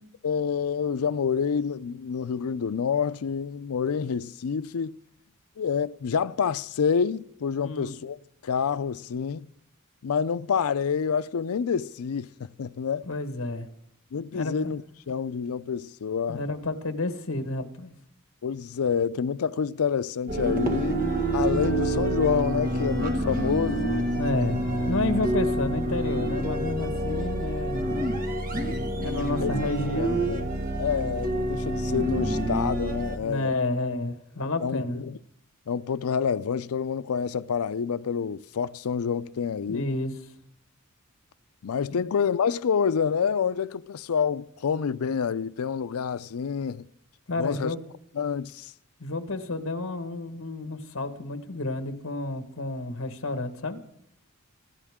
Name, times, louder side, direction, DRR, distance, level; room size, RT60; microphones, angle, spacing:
voice 1, 0.2-5.0 5.6-8.2 8.4-9.5 10.0-13.1 14.1-14.8 15.1-16.4 18.4-21.0 21.3-23.8 29.4-29.5 30.0-30.4 30.8-33.5 34.6-35.2 35.7-39.9 41.6-46.9 47.4-47.7 48.1-48.7, left 6 dB, 80° left, 0.5 m, -28 dB
voice 2, 7.6-7.9 13.0-13.7 14.3-14.5 16.3-17.9 24.2-27.8 29.0-30.2 33.2-35.0 39.7-40.1 41.9-42.1 47.3-47.8 49.0-53.8, left 2 dB, 65° left, 1.5 m, -30 dB
sound 1, 20.3-33.2, right 1 dB, 40° right, 1.7 m, -27 dB
26.0 x 12.5 x 3.6 m
head